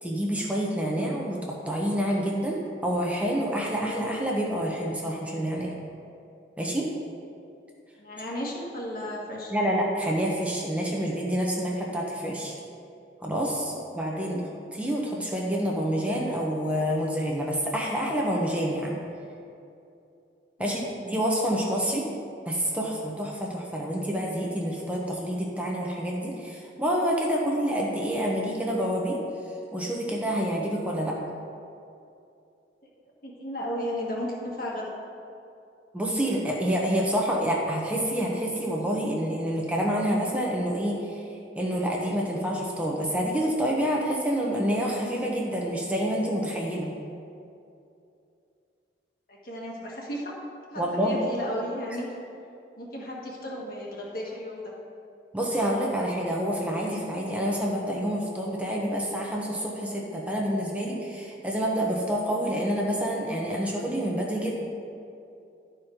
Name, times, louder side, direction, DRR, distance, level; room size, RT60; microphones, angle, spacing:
voice 1, 0.0-5.7 6.6-6.9 9.5-12.6 13.2-14.4 14.8-18.9 20.6-22.1 22.5-29.2 29.7-31.2 35.9-41.2 41.6-46.9 50.8-51.2 55.3-64.5, equal, 10° right, -2 dB, 0.8 m, -28 dB
voice 2, 8.0-9.5 14.1-14.4 20.6-20.9 33.2-34.9 49.3-50.3 50.7-52.1 52.8-54.7, equal, 55° left, -3 dB, 1.5 m, -34 dB
11.0 x 4.5 x 5.0 m, 2.6 s
head